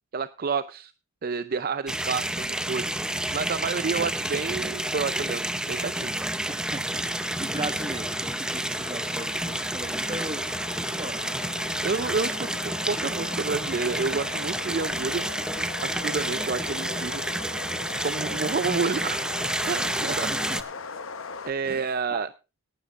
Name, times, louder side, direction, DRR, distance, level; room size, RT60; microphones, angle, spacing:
voice 1, 0.1-0.9 1.2-6.1 11.8-15.2 15.8-17.2 18.0-19.2 19.7-20.3 21.5-22.3, right 5 dB, 45° right, 13 dB, 0.5 m, -29 dB
sound 1, 1.9-20.6, right 1 dB, 5° right, 0.6 m, -30 dB
sound 2, 6.0-21.5, left 5 dB, 80° left, 1.0 m, -40 dB
voice 2, 6.5-11.7 20.0-20.6 21.6-22.2, right 2 dB, 25° right, 8 dB, 1.4 m, -38 dB
18.0 x 12.5 x 2.5 m, 0.30 s
head